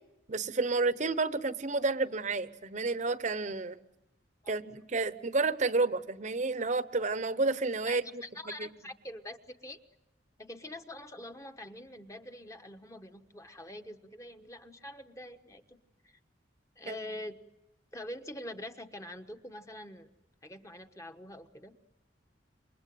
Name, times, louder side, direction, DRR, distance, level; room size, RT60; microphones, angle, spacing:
voice 1, 0.3-3.8 4.5-8.2 8.6-8.7 16.9-17.0, right 3 dB, 40° right, 14 dB, 0.9 m, -30 dB
voice 2, 7.9-9.8 10.4-15.8 16.0-16.2 16.8-17.4 17.9-20.1 20.4-21.8, left 1 dB, 15° left, 6 dB, 1.2 m, -45 dB
28.0 x 24.0 x 7.8 m, 0.96 s
head